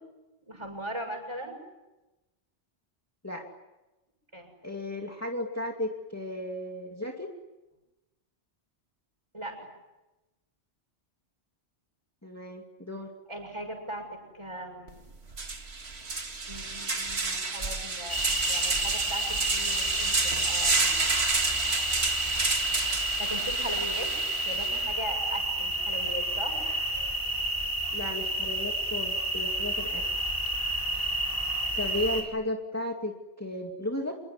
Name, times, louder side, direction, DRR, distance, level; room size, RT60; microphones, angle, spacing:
voice 1, 0.5-1.6 4.3-4.5 9.3-9.7 13.3-15.1 16.5-20.9 23.2-24.1 24.4-26.6, right 1 dB, 25° right, 4 dB, 7.1 m, -39 dB
voice 2, 4.6-7.3 12.2-13.1 27.9-30.0 31.8-34.1, left 1 dB, 15° left, 1 dB, 2.5 m, -34 dB
sound 1, 14.9-15.0 15.3-24.9, right 3 dB, 65° right, 2.2 m, -30 dB
sound 2, 18.1-32.2, right 1 dB, 30° left, 5.0 m, -30 dB
27.5 x 22.0 x 9.8 m, 1.0 s
omnidirectional pair, 1.2 m